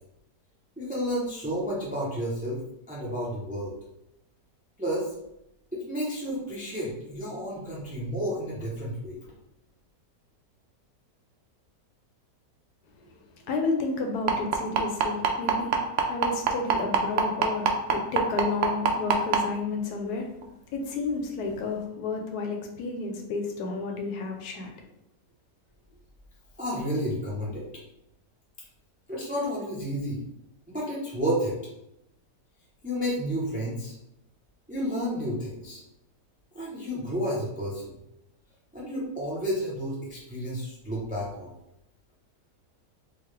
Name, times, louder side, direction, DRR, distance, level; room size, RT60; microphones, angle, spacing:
voice 1, 0.8-2.6 2.9-3.7 4.8-5.1 5.7-9.2 26.6-27.7 29.1-30.2 30.7-31.6 32.8-33.9 34.7-35.8 36.5-37.9 38.7-41.5, equal, 10° right, -6 dB, 0.3 m, -31 dB
voice 2, 13.0-15.8 16.1-20.3 20.7-24.9, left 3 dB, 75° left, 2 dB, 1.1 m, -31 dB
sound 1, 14.3-19.4 20.4-20.5 20.9-21.0 21.5-21.6, right 9 dB, 75° right, 0.6 m, -22 dB
3.8 x 2.4 x 3.2 m, 0.82 s
omnidirectional pair, 1.8 m